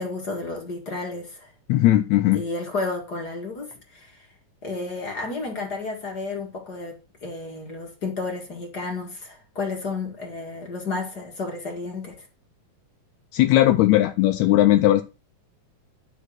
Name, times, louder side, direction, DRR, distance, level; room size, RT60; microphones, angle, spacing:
voice 1, 0.0-1.5 2.3-4.2 4.6-12.3, left 3 dB, 35° left, 2.0 m, -32 dB
voice 2, 1.7-2.4 13.3-15.0, left 14 dB, 75° left, 1.8 m, -18 dB
11.0 x 5.1 x 6.2 m
omnidirectional pair, 3.7 m